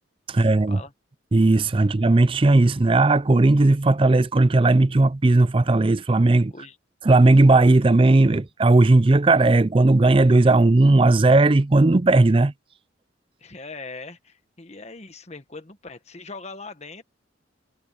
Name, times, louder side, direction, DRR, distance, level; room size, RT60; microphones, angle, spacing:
voice 1, 0.3-0.8 1.3-6.5 7.0-12.5, right 2 dB, 25° right, 0.4 m, -17 dB
voice 2, 13.4-17.0, left 3 dB, 35° left, 1.4 m, -40 dB
head